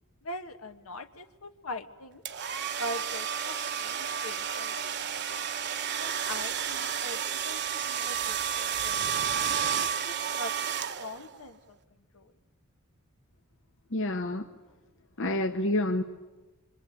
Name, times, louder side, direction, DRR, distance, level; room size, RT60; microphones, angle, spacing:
voice 1, 0.2-2.2 2.8-5.4 6.0-9.0 9.8-10.7 11.0-11.8 12.1-12.3, left 1 dB, 75° left, 7 dB, 1.5 m, -42 dB
sound 1, 2.2-11.4, right 8 dB, 55° right, 1.1 m, -31 dB
voice 2, 13.9-14.4 15.2-16.0, left 1 dB, 60° left, 4 dB, 1.2 m, -28 dB
26.0 x 24.5 x 9.2 m, 1.2 s
head